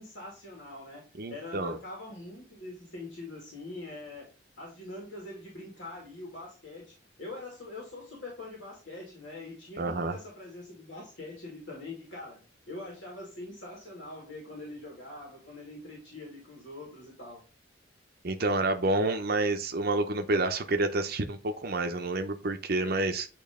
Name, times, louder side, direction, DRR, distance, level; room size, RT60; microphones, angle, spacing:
voice 1, 0.0-4.3 4.6-17.4, left 2 dB, 70° left, -2 dB, 2.2 m, -43 dB
voice 2, 1.2-1.8 9.8-10.1 18.2-23.3, right 2 dB, 50° right, 6 dB, 0.7 m, -29 dB
8.6 x 3.1 x 3.6 m, 0.34 s
head